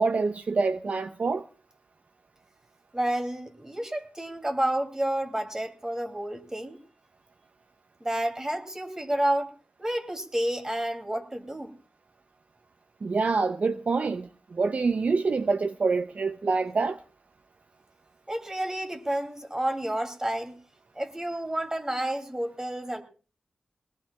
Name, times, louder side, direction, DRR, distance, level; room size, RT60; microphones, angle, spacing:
voice 1, 0.0-1.5 13.0-17.0, right 4 dB, 60° right, 0.6 m, -26 dB
voice 2, 2.9-6.8 8.0-9.5 9.8-11.7 18.3-20.6 20.9-23.0, right 1 dB, 20° right, 2.7 m, -30 dB
21.5 x 19.0 x 2.3 m
cardioid pair, 55°, 3 cm